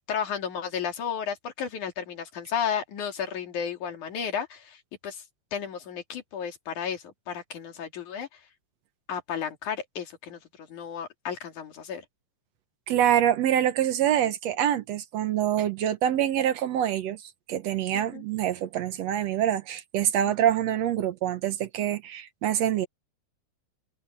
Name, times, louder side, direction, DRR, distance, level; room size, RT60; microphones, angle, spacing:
voice 1, 0.0-5.2 5.5-8.4 9.1-12.0 17.9-18.2 20.2-20.3, left 7 dB, 75° left, 4.1 m, -33 dB
voice 2, 12.9-17.2 17.5-22.9, right 10 dB, 65° right, 2.0 m, -25 dB
omnidirectional pair, 3.5 m